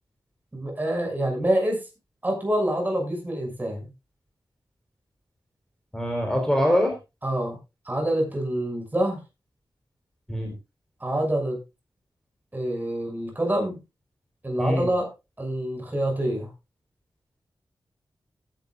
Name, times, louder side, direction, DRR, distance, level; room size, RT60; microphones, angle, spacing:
voice 1, 0.5-1.8 2.2-3.8 7.2-7.6 7.9-9.2 11.0-11.6 12.5-13.8 14.4-15.1 15.4-16.5, right 1 dB, 20° right, 2 dB, 6.3 m, -26 dB
voice 2, 5.9-7.0 10.3-10.5 14.6-14.9, equal, 5° left, 3 dB, 4.0 m, -23 dB
16.5 x 11.0 x 2.4 m, 0.26 s
wide cardioid pair, 110°, 9 cm